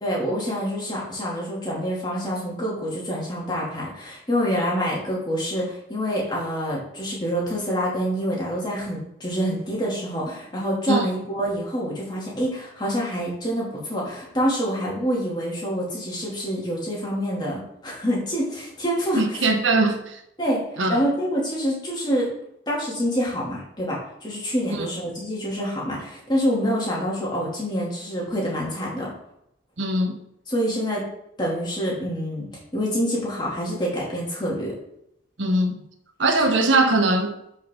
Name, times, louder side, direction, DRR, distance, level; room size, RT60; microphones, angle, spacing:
voice 1, 0.0-19.4 20.4-20.6 20.9-22.3 22.7-29.1 30.5-31.0 31.4-32.5 32.7-34.7, equal, 25° left, 2.8 m, -26 dB
voice 2, 19.2-20.2 20.8-21.0 24.8-24.9 29.8-30.2 35.4-35.8 36.2-37.4, right 2 dB, 80° right, 1.2 m, -21 dB
11.5 x 5.5 x 3.8 m
head